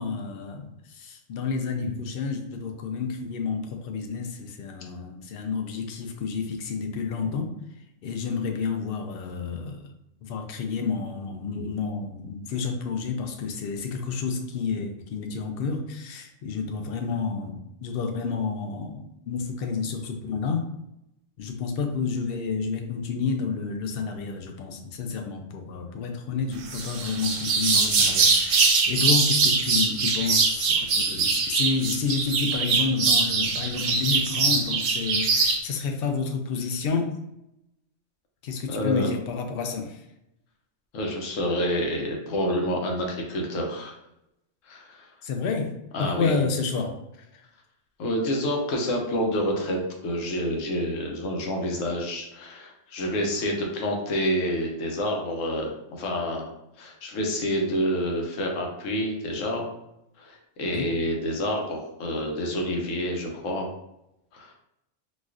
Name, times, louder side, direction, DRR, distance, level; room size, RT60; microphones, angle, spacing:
voice 1, 0.0-7.6 8.0-9.9 10.2-20.6 21.4-37.2 38.4-40.0 45.2-45.7 46.0-47.4 60.7-60.9, left 5 dB, 60° left, 4 dB, 0.6 m, -30 dB
sound 1, 26.7-35.6, right 4 dB, 90° right, 1.0 m, -22 dB
voice 2, 38.7-39.1 40.9-43.9 44.7-45.1 45.9-46.3 48.0-59.7 60.2-63.7 64.3-64.5, equal, 85° left, 1 dB, 1.1 m, -28 dB
4.0 x 2.4 x 2.4 m, 0.84 s
omnidirectional pair, 1.3 m